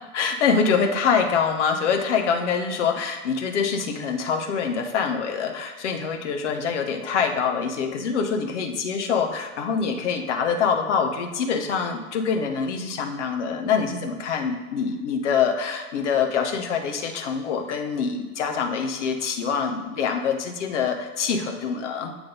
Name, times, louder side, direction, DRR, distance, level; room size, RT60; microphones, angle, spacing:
voice 1, 0.1-22.2, left 6 dB, 50° left, 5 dB, 1.1 m, -25 dB
8.1 x 3.4 x 5.3 m, 1.3 s
figure-of-eight pair, 100°, 45 cm